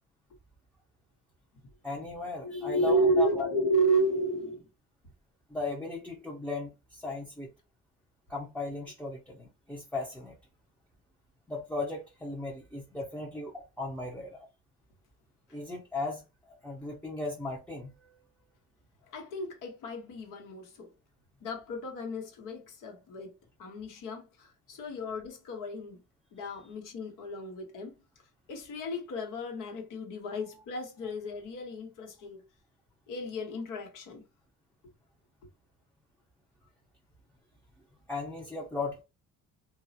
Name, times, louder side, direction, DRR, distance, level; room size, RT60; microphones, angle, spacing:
voice 1, 1.8-3.5 5.5-7.5 8.3-10.4 11.5-14.5 15.5-18.2 38.1-39.0, left 2 dB, 5° left, 0.6 m, -37 dB
voice 2, 2.4-4.7 19.1-20.9 21.4-26.0 26.3-28.0 28.5-32.4 33.1-34.2, right 1 dB, 75° left, 1.1 m, -32 dB
2.4 x 2.0 x 2.6 m
cardioid pair, 90°, 32 cm